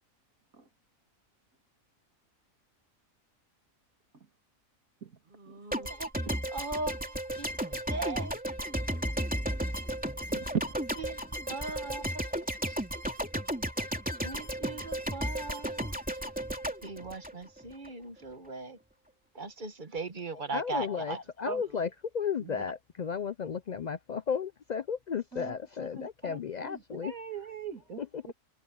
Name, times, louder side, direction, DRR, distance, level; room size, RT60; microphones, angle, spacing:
voice 1, 5.3-8.3 11.0-12.3 12.6-12.8 14.2-16.2 16.8-18.8 19.3-21.2, right 3 dB, 35° right, 1.4 m, -39 dB
sound 1, 5.7-17.9, equal, 5° right, 2.9 m, -34 dB
voice 2, 10.3-10.6 21.4-21.6 22.4-22.6 25.3-28.0 28.3-28.4, right 6 dB, 85° right, 2.8 m, -39 dB
voice 3, 20.5-27.1 28.0-28.3, left 6 dB, 75° left, 0.4 m, -34 dB
omnidirectional pair, 1.4 m